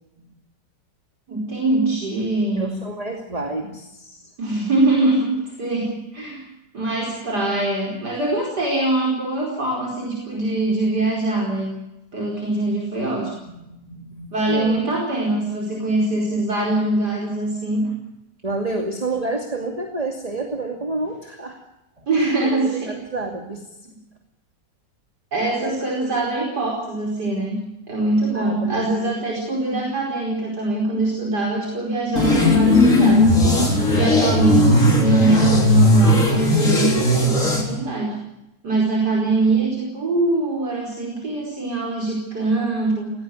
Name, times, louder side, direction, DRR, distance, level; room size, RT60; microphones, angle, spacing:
voice 1, 1.3-2.7 4.4-5.3 5.6-6.5 6.7-11.7 12.1-13.3 14.3-17.9 22.1-22.9 25.3-27.6 27.9-33.4 33.9-38.2 38.6-43.1, right 2 dB, 65° right, -2 dB, 5.4 m, -23 dB
voice 2, 2.6-4.3 13.7-14.8 18.4-21.6 22.5-23.6 25.6-26.2 28.3-29.1, right 2 dB, 20° right, 3 dB, 2.5 m, -29 dB
sound 1, 32.1-37.6, left 1 dB, 45° left, 4.4 m, -16 dB
19.0 x 18.0 x 9.4 m, 0.89 s
omnidirectional pair, 1.9 m